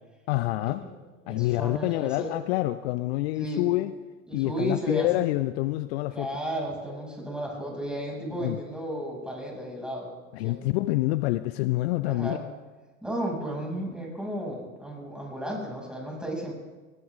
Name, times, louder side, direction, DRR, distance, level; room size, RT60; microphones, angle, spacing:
voice 1, 0.3-0.8 1.3-3.9 4.3-6.3 8.4-8.6 10.3-12.4, left 18 dB, 55° left, 14 dB, 0.6 m, -27 dB
voice 2, 1.2-2.3 3.4-3.7 4.3-5.2 6.1-10.1 10.4-10.7 12.0-12.4 13.0-16.5, right 1 dB, ahead, -2 dB, 6.7 m, -33 dB
21.0 x 17.5 x 3.7 m, 1.3 s
figure-of-eight pair, 70°, 37 cm